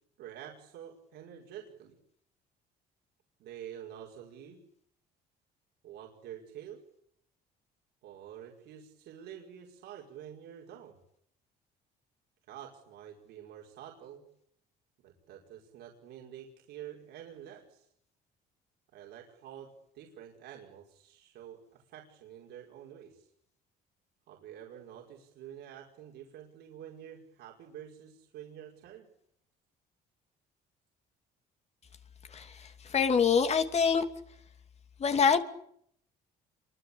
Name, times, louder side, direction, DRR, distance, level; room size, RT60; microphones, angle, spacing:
voice 1, 0.2-2.0 3.4-4.6 5.8-6.8 8.0-11.0 12.5-14.2 15.0-17.9 18.9-23.3 24.3-29.1, right 10 dB, 80° right, -1 dB, 5.3 m, -48 dB
voice 2, 32.3-34.0 35.0-35.4, left 6 dB, 40° left, 8 dB, 2.8 m, -25 dB
28.0 x 24.0 x 8.8 m, 0.72 s
cardioid pair, 110°, 17 cm